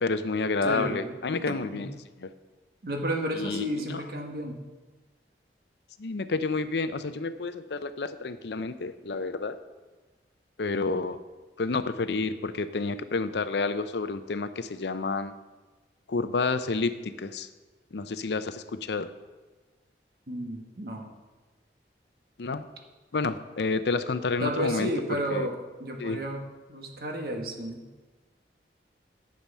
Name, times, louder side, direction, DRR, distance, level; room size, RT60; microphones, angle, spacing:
voice 1, 0.0-1.9 2.2-2.3 3.3-4.0 6.0-9.6 10.6-11.2 11.6-15.3 16.1-17.5 17.9-19.1 22.4-22.6 23.1-24.9 25.3-25.5 26.0-26.2, left 3 dB, 75° left, 12 dB, 0.6 m, -29 dB
voice 2, 0.6-1.2 1.5-1.8 2.8-4.6 20.3-21.1 24.4-25.5 25.8-26.4 26.7-27.8, right 1 dB, 55° right, 2 dB, 1.5 m, -32 dB
10.5 x 7.6 x 5.5 m, 1.3 s
head